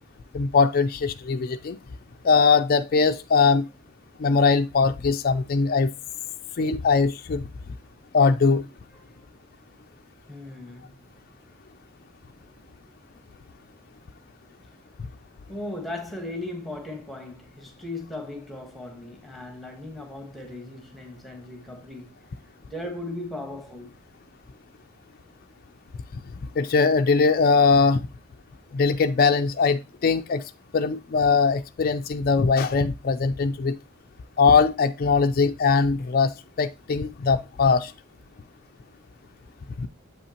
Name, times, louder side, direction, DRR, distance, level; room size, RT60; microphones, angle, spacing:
voice 1, 0.3-1.8 2.2-3.7 4.2-5.9 6.6-7.4 8.1-8.6 26.1-26.2 26.6-28.0 28.7-33.8 34.4-37.9 39.8-39.9, left 4 dB, 40° left, 0.3 m, -21 dB
voice 2, 8.9-9.3 10.3-11.1 15.5-22.1 22.7-23.9, left 2 dB, ahead, 1.2 m, -37 dB
7.5 x 5.6 x 2.8 m
head